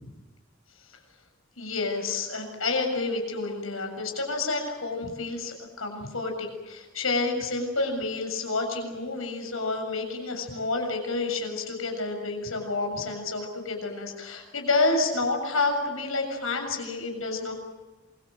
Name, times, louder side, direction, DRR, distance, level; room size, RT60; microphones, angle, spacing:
voice 1, 1.6-17.5, left 3 dB, 85° left, 4 dB, 7.1 m, -29 dB
27.5 x 23.5 x 7.7 m, 1.2 s
head